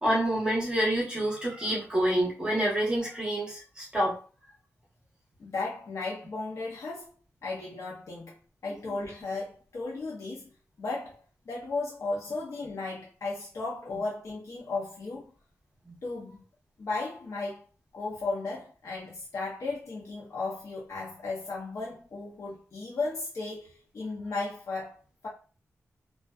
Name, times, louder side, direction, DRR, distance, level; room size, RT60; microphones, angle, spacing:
voice 1, 0.0-4.2, right 1 dB, 15° right, 1.0 m, -27 dB
voice 2, 5.4-7.1 7.4-8.4 8.6-10.5 10.8-15.3 16.0-16.4 16.8-17.6 17.9-23.7 23.9-25.3, left 3 dB, 65° left, 0.7 m, -35 dB
2.4 x 2.3 x 2.3 m
wide cardioid pair, 115°, 5 cm